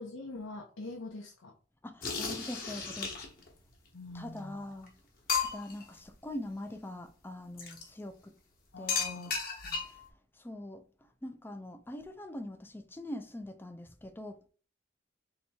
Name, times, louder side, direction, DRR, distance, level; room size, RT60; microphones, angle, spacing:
voice 1, 0.0-1.6 3.9-4.7 8.7-9.8, left 2 dB, 85° left, 0.7 m, -44 dB
voice 2, 1.8-3.2 4.1-5.0 5.3-8.4 8.8-9.2 9.9-10.0 10.4-10.8 11.2-14.4, left 1 dB, 10° left, 0.3 m, -43 dB
sound 1, 2.0-3.5 4.4-4.5 4.8-4.9 5.3-5.8 7.6-7.9 8.9-10.1, left 5 dB, 45° left, 1.1 m, -34 dB
3.4 x 2.9 x 4.2 m
head